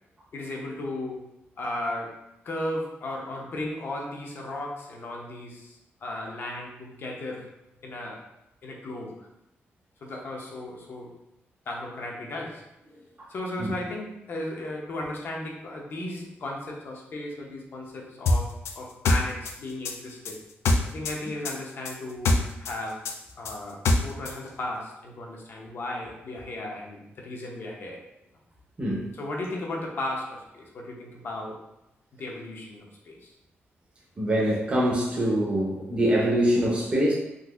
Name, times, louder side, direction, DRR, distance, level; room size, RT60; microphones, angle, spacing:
voice 1, 0.3-1.2 1.6-2.2 2.4-7.5 7.8-8.2 8.6-9.3 10.0-11.1 11.7-12.6 13.3-20.4 20.9-23.1 23.4-28.0 29.1-31.6 32.2-33.3, left 1 dB, 55° left, -1 dB, 0.7 m, -35 dB
sound 1, 18.3-21.2 21.4-24.4, left 2 dB, 85° left, 0.4 m, -24 dB
voice 2, 34.2-37.1, equal, 25° right, -4 dB, 0.7 m, -24 dB
3.8 x 2.5 x 2.4 m, 0.91 s
wide cardioid pair, 150°, 4 cm